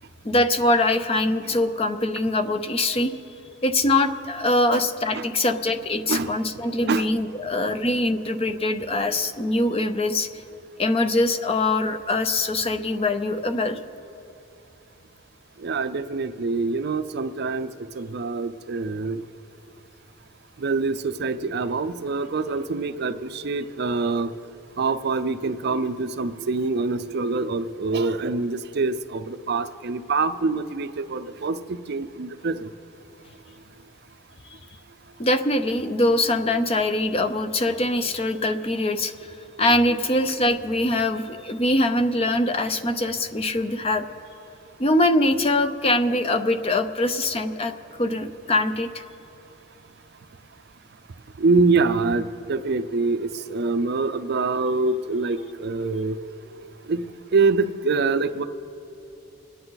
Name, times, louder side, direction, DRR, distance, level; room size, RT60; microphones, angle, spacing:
voice 1, 0.2-3.1 3.6-10.3 10.8-13.8 35.2-39.1 39.6-44.1 44.8-49.0, left 1 dB, 30° left, 9 dB, 0.6 m, -23 dB
voice 2, 15.6-17.7 17.9-19.2 20.6-24.3 24.8-32.7 51.4-56.2 56.9-57.1 57.3-58.4, right 3 dB, 50° right, 10 dB, 0.5 m, -25 dB
27.0 x 10.5 x 4.0 m, 2.9 s
head